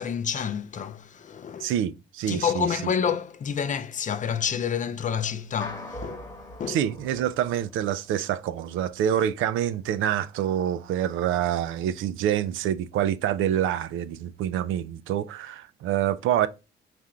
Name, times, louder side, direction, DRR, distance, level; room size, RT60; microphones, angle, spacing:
voice 1, 0.0-1.7 2.3-6.3 6.6-6.8, left 7 dB, 40° left, 0.4 m, -29 dB
voice 2, 1.6-2.9 6.7-16.5, right 10 dB, 85° right, 0.4 m, -26 dB
sound 1, 5.6-8.1, left 1 dB, 15° left, 1.1 m, -41 dB
3.6 x 2.5 x 4.2 m
cardioid pair, 90°, 20 cm